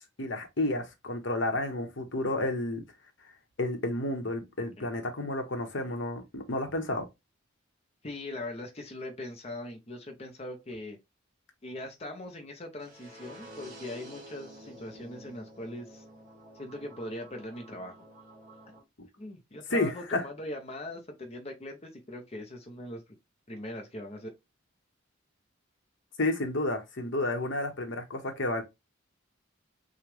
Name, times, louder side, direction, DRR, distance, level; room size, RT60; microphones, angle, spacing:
voice 1, 0.2-2.8 3.6-7.0 19.0-19.1 19.7-20.2 26.2-28.6, left 2 dB, 65° left, 1.1 m, -31 dB
voice 2, 8.0-11.0 11.6-16.0 16.5-18.0 19.2-23.1 23.5-24.3, left 1 dB, 30° left, 0.7 m, -41 dB
sound 1, 12.8-18.8, equal, 40° right, 3.1 m, -50 dB
6.0 x 2.4 x 3.3 m
head